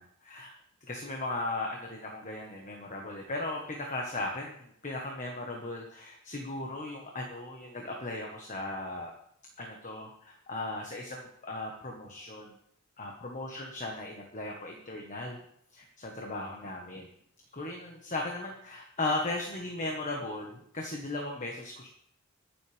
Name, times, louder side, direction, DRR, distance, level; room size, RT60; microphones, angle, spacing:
voice 1, 0.2-0.5 0.8-9.1 9.6-12.5 13.0-15.4 15.7-17.1 17.5-21.9, left 2 dB, 35° left, 1 dB, 1.4 m, -37 dB
22.5 x 7.7 x 3.5 m, 0.70 s
head